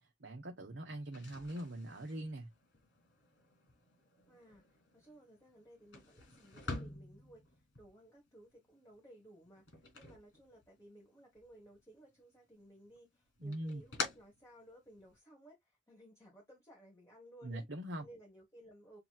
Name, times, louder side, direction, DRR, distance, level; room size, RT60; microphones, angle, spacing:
voice 1, 0.0-2.5 13.4-13.8 17.4-18.0, right 1 dB, 75° right, 1.0 m, -42 dB
sound 1, 1.0-11.0 11.3-12.2 12.6-15.2, left 3 dB, 75° left, 3.1 m, -48 dB
voice 2, 4.3-17.7 18.0-19.0, right 1 dB, 15° left, 1.4 m, -59 dB
6.8 x 3.0 x 2.4 m
head